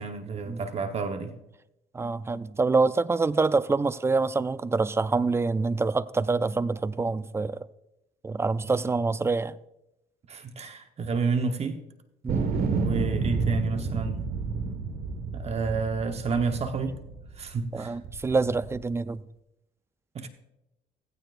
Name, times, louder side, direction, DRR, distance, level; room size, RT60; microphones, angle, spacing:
voice 1, 0.0-1.3 10.3-11.8 12.8-14.2 15.3-17.0 17.4-18.0 20.1-20.3, right 4 dB, 40° right, 1.0 m, -30 dB
voice 2, 1.9-7.7 8.2-9.6 12.2-12.5 17.7-19.2, right 3 dB, 15° right, 0.4 m, -26 dB
sound 1, 12.3-17.5 18.0-18.8, right 4 dB, 60° right, 1.5 m, -30 dB
16.0 x 15.0 x 2.5 m
cardioid pair, 110°, 17 cm